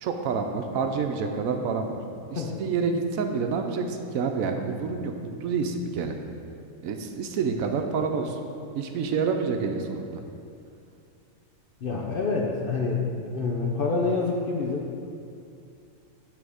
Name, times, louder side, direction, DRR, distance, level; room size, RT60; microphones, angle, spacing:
voice 1, 0.0-2.0 2.3-6.1 6.8-8.4 8.7-10.2, right 5 dB, 75° right, 4 dB, 1.0 m, -28 dB
voice 2, 11.8-14.9, left 4 dB, 55° left, -1 dB, 0.6 m, -27 dB
9.1 x 3.5 x 4.9 m, 2.5 s
omnidirectional pair, 1.5 m